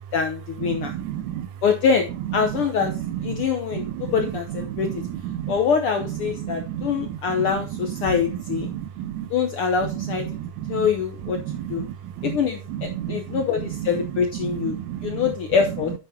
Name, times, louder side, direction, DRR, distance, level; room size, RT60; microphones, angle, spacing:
voice 1, 0.1-0.9 1.6-2.9 3.2-5.0 5.5-8.7 9.3-10.3 10.7-11.4 11.7-11.8 12.2-14.8 15.0-15.9, left 6 dB, 70° left, 1.3 m, -24 dB
voice 2, 0.7-1.5 3.1-3.5 3.7-4.1 4.7-4.9 5.2-5.5 6.4-7.2 8.6-9.3 10.0-10.9 11.5-11.9 12.2-12.4 12.7-13.4 13.8-13.9 14.4-15.2, right 11 dB, 80° right, 1.9 m, -31 dB
10.0 x 7.7 x 2.7 m
omnidirectional pair, 3.5 m